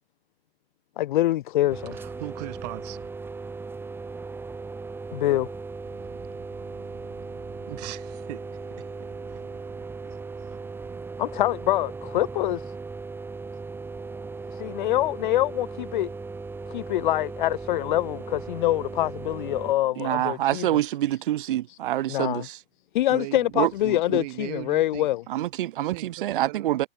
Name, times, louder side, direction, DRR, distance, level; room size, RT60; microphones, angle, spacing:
voice 1, 1.0-1.9 5.1-5.5 11.2-12.6 14.5-16.1 16.7-20.8 21.7-21.8 22.1-22.5 22.9-25.2, left 14 dB, 50° left, 0.8 m, -25 dB
sound 1, 1.7-19.7, right 4 dB, 5° right, 3.0 m, -37 dB
voice 2, 1.8-3.1 5.9-11.1 23.1-25.1 25.7-26.9, right 23 dB, 40° right, 7.0 m, -41 dB
voice 3, 20.0-22.6 23.6-23.7 24.1-24.2 25.3-26.9, right 13 dB, 55° right, 1.8 m, -26 dB
hypercardioid pair, 150°, 31 cm